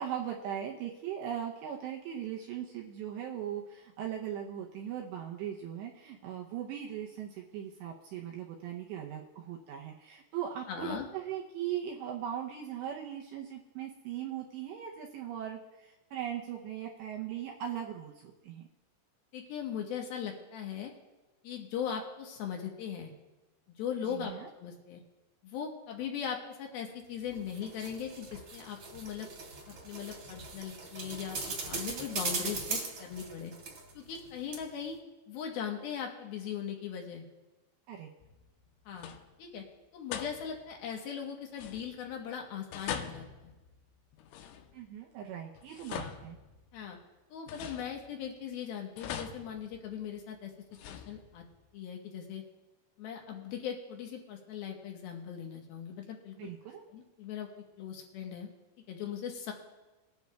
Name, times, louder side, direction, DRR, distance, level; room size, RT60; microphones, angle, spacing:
voice 1, 0.0-18.7 24.0-24.5 31.9-32.0 37.9-38.1 44.7-46.4 56.4-56.8, right 9 dB, 80° right, -1 dB, 2.6 m, -39 dB
voice 2, 10.7-11.1 19.3-20.9 21.4-23.1 23.8-25.0 25.4-29.3 29.7-33.5 33.9-35.0 35.3-37.2 38.9-39.1 39.4-39.6 39.9-43.5 45.9-46.1 46.7-47.0 47.3-50.5 50.9-51.4 51.7-52.4 53.0-56.5 56.9-57.5 57.8-58.5 58.9-59.5, left 8 dB, 70° left, 1 dB, 2.4 m, -39 dB
sound 1, 27.3-34.3 34.5-34.6, right 3 dB, 45° right, 2.0 m, -39 dB
sound 2, 38.2-38.7 38.9-39.5 40.1-40.8 41.5-42.2 42.7-45.0 45.6-46.9 47.5-48.4 49.0-50.2 50.7-51.6, left 8 dB, 90° left, 3.3 m, -43 dB
21.0 x 10.5 x 2.3 m, 1.1 s
omnidirectional pair, 5.7 m